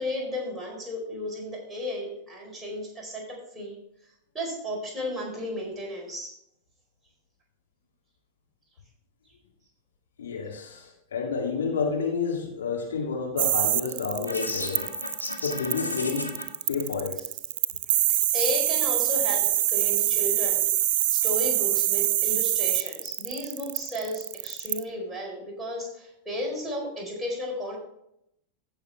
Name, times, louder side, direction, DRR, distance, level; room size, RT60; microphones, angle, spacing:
voice 1, 0.0-3.7 4.3-6.3 18.3-20.7 21.1-27.8, left 1 dB, 5° right, -3 dB, 4.7 m, -34 dB
voice 2, 10.2-14.9 15.4-16.3 16.7-17.2, left 5 dB, 65° left, 0 dB, 2.0 m, -30 dB
sound 1, 13.4-24.8, right 13 dB, 50° right, 0.4 m, -25 dB
sound 2, 14.3-16.4, left 2 dB, 85° left, 1.7 m, -34 dB
16.0 x 6.5 x 3.5 m, 0.77 s
figure-of-eight pair, 90°, 0 cm